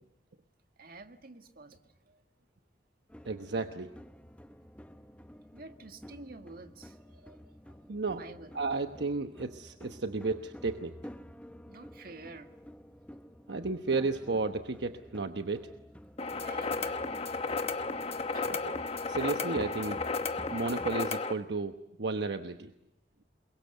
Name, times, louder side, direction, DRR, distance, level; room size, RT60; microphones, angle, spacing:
voice 1, 0.8-2.2 5.5-7.4 7.7-7.8 8.1-8.5 11.7-12.5 16.4-17.0 18.1-18.5, right 3 dB, 55° right, 6 dB, 1.9 m, -49 dB
sound 1, 3.1-21.1, equal, 5° left, 1.0 m, -51 dB
voice 2, 3.2-3.9 7.9-8.2 8.5-11.0 13.5-15.7 18.4-18.7 19.1-20.0 20.5-22.7, right 3 dB, 75° right, 7 dB, 1.1 m, -33 dB
sound 2, 16.2-21.3, left 4 dB, 35° left, 1.2 m, -33 dB
28.5 x 22.5 x 8.1 m, 0.84 s
head